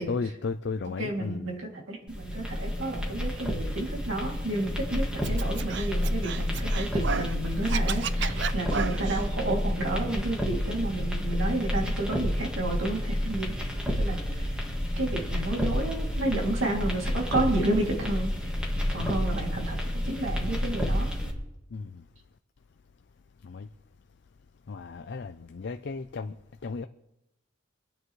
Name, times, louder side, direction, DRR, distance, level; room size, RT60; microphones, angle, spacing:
voice 1, 0.0-1.5 19.0-19.1 21.7-22.0 23.4-23.7 24.7-26.3 26.6-26.9, left 4 dB, 55° left, 0.4 m, -34 dB
voice 2, 1.0-13.6 13.9-14.6 15.0-18.3 18.9-21.1, right 2 dB, 75° right, 2.7 m, -31 dB
sound 1, 2.1-21.3, equal, 5° right, 1.9 m, -30 dB
Scratching (performance technique), 5.2-7.3 7.6-9.2, right 6 dB, 60° right, 0.5 m, -33 dB
24.5 x 9.1 x 3.2 m
head